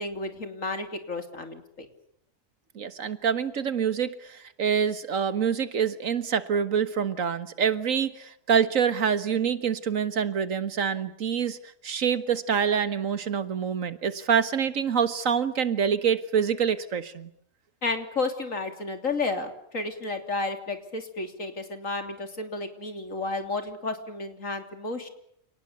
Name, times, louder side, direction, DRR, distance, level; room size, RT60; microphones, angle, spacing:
voice 1, 0.0-1.9 17.8-25.1, left 3 dB, 80° left, 7 dB, 3.5 m, -32 dB
voice 2, 2.8-11.6 11.8-17.3, right 7 dB, 85° right, 13 dB, 1.8 m, -26 dB
28.5 x 19.5 x 8.4 m, 0.69 s
omnidirectional pair, 1.3 m